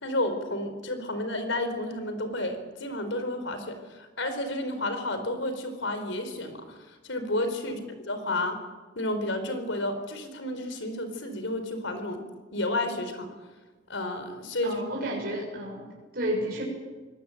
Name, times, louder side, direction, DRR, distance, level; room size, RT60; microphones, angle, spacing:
voice 1, 0.0-7.8 8.1-8.6 8.9-12.2 12.5-13.3 13.9-14.8, left 1 dB, 80° left, 8 dB, 4.5 m, -31 dB
voice 2, 14.6-15.9 16.1-16.6, right 1 dB, 50° right, -3 dB, 7.1 m, -31 dB
24.0 x 19.0 x 9.3 m, 1.3 s
head